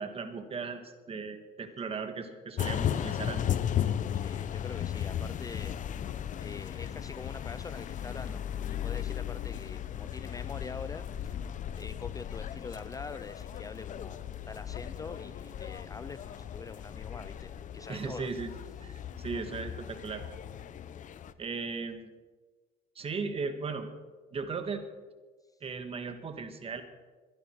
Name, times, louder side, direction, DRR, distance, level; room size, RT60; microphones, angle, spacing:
voice 1, 0.0-3.5 17.9-18.5 18.8-20.2 21.4-22.1 22.9-23.9 24.3-24.9 25.6-26.8, right 4 dB, 35° right, 8 dB, 1.7 m, -37 dB
sound 1, 2.6-21.3, left 10 dB, 50° left, 0.7 m, -36 dB
voice 2, 4.1-5.8 6.4-8.4 8.7-11.4 11.8-18.3 19.0-19.1, left 4 dB, 20° left, 14 dB, 0.4 m, -45 dB
22.0 x 11.0 x 4.7 m, 1.3 s
cardioid pair, 110°, 17 cm